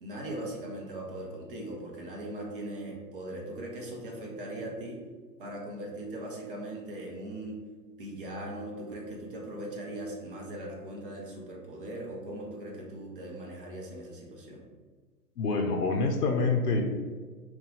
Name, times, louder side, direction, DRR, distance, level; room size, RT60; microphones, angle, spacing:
voice 1, 0.0-5.0 5.4-7.6 8.0-14.7, right 1 dB, 35° right, -1 dB, 0.6 m, -39 dB
voice 2, 15.4-16.8, left 3 dB, 70° left, 2 dB, 0.6 m, -26 dB
2.6 x 2.3 x 3.8 m, 1.4 s
figure-of-eight pair, 120°, 48 cm